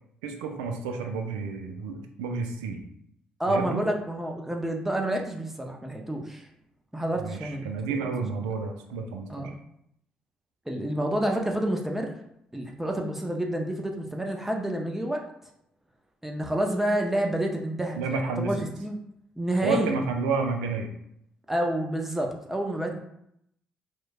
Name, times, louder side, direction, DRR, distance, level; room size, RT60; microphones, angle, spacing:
voice 1, 0.2-2.8 3.5-3.8 7.2-9.5 18.0-18.5 19.6-20.9, right 4 dB, 85° right, 4 dB, 0.3 m, -30 dB
voice 2, 3.4-6.5 6.9-7.7 8.0-8.1 9.3-9.5 10.7-12.1 12.5-15.2 16.2-19.0 19.4-20.0 21.5-23.0, right 1 dB, 10° right, 1 dB, 0.5 m, -29 dB
3.0 x 2.1 x 2.3 m, 0.74 s
hypercardioid pair, 55°, 3 cm